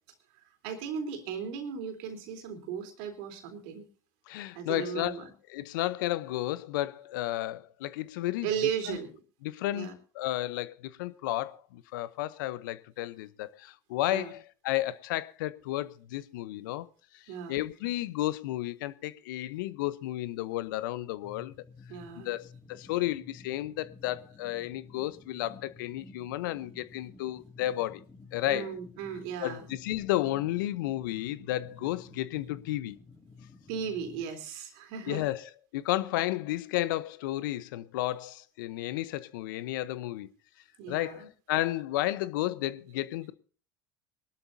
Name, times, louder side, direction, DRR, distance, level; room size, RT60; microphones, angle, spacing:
voice 1, 0.6-3.8 4.5-5.2 8.4-9.1 9.7-10.0 14.1-14.3 17.3-17.6 21.9-22.3 28.5-29.6 33.7-35.3 40.8-41.3, right 7 dB, 65° right, 3.5 m, -36 dB
voice 2, 4.3-5.2 5.5-8.5 8.9-9.0 9.4-16.9 17.1-21.5 22.2-28.0 28.3-28.7 29.4-33.0 35.1-40.3 40.9-43.3, left 15 dB, 75° left, 0.9 m, -32 dB
sound 1, 21.2-34.2, left 4 dB, 20° left, 3.4 m, -52 dB
23.5 x 12.5 x 2.7 m
hypercardioid pair, 80°, 11 cm